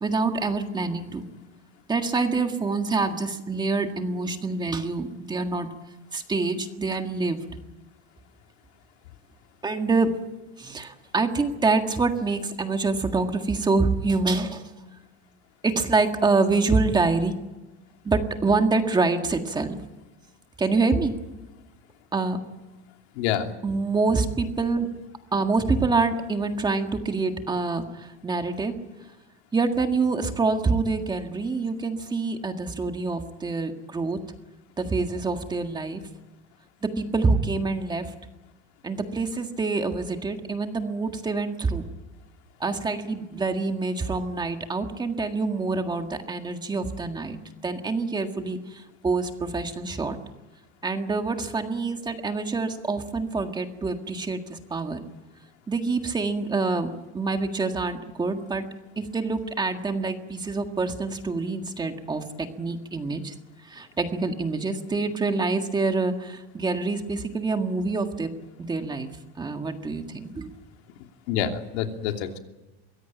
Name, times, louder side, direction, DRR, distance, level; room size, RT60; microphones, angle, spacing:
voice 1, 0.0-1.2 1.9-5.7 6.1-7.4 9.6-10.2 10.6-14.6 15.6-17.4 18.1-19.8 20.6-21.2 22.1-22.4 23.6-24.9 25.3-28.7 29.5-34.2 34.8-36.0 36.8-38.1 38.8-41.8 42.6-47.4 47.6-50.2 50.8-55.0 55.7-58.7 59.0-63.3 63.6-68.3 68.6-69.1 69.4-70.5, right 3 dB, 15° right, 6 dB, 1.7 m, -26 dB
voice 2, 23.1-23.5 71.3-72.4, left 9 dB, 85° left, 4 dB, 2.9 m, -27 dB
23.5 x 16.5 x 9.1 m, 1.1 s
cardioid pair, 160°, 32 cm